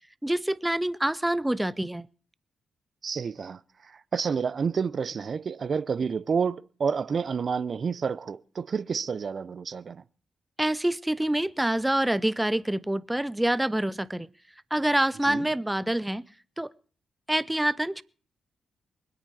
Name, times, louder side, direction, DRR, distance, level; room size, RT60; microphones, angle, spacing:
voice 1, 0.2-2.1 10.6-14.3 14.7-16.2 16.6-16.7 17.3-18.0, right 1 dB, 10° right, 0.7 m, -26 dB
voice 2, 3.0-10.0 15.2-15.4, right 6 dB, 55° right, 0.7 m, -29 dB
24.0 x 8.9 x 4.9 m
hypercardioid pair, 40°, 0 cm